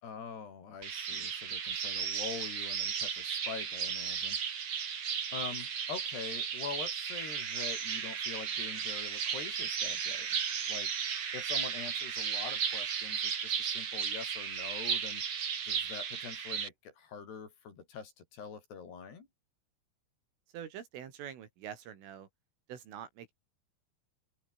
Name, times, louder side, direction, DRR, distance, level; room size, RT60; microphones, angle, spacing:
voice 1, 0.0-4.4 5.3-10.4 10.7-15.2 15.7-19.3, left 6 dB, 55° left, 6.4 m, -45 dB
sound 1, 0.8-16.7, right 7 dB, 40° right, 2.6 m, -35 dB
voice 2, 20.5-22.3 22.7-23.3, right 9 dB, 80° right, 5.7 m, -45 dB
open air
omnidirectional pair, 5.7 m